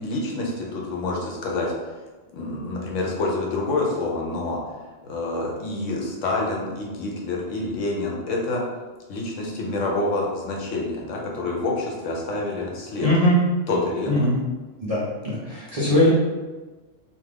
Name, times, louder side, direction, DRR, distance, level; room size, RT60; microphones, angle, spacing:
voice 1, 0.0-1.7 2.3-4.6 5.0-8.6 9.1-13.1 13.7-14.3 15.7-16.0, left 2 dB, 80° left, -2 dB, 1.0 m, -27 dB
voice 2, 13.0-13.4 14.1-14.4 14.8-16.1, left 1 dB, 45° right, -9 dB, 0.5 m, -21 dB
2.4 x 2.4 x 3.3 m, 1.3 s
omnidirectional pair, 1.3 m